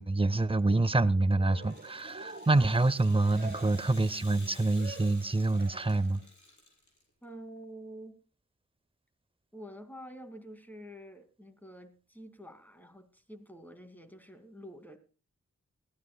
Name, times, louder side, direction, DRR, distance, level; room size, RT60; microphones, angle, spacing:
voice 1, 0.0-6.2, right 2 dB, 20° right, 0.5 m, -26 dB
Cheering, 1.3-6.3, right 3 dB, 35° right, 1.1 m, -48 dB
Rattle (instrument), 1.5-7.0, left 2 dB, 70° left, 6.2 m, -53 dB
voice 2, 7.2-8.2 9.5-15.0, equal, 5° left, 2.3 m, -48 dB
21.0 x 15.0 x 2.2 m
cardioid pair, 50°, 30 cm